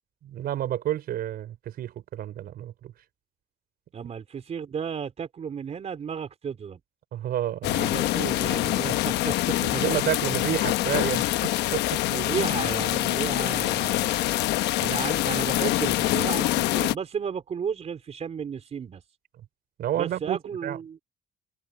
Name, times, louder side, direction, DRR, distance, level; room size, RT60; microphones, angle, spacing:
voice 1, 0.2-2.9 7.1-8.0 9.6-11.8 19.8-20.8, right 12 dB, 65° right, 4.5 m, -30 dB
voice 2, 3.9-6.8 7.9-9.7 12.1-14.3 14.8-19.0 19.9-21.0, right 7 dB, 40° right, 4.0 m, -33 dB
sound 1, 7.6-17.0, left 16 dB, 85° left, 1.0 m, -25 dB
cardioid pair, 110°, 17 cm